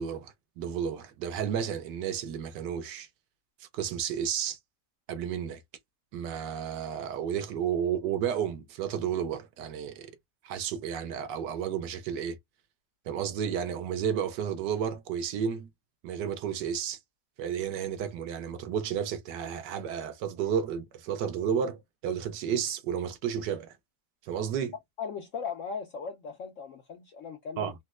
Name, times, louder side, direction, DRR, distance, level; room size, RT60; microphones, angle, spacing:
voice 1, 0.0-3.1 3.7-4.6 5.1-5.6 6.1-10.1 10.4-12.4 13.1-15.7 16.0-17.0 17.4-23.7 24.2-24.7 27.6-27.7, right 8 dB, 75° right, 1.3 m, -32 dB
voice 2, 25.0-27.7, left 6 dB, 70° left, 0.7 m, -38 dB
4.1 x 2.0 x 2.3 m
omnidirectional pair, 1.9 m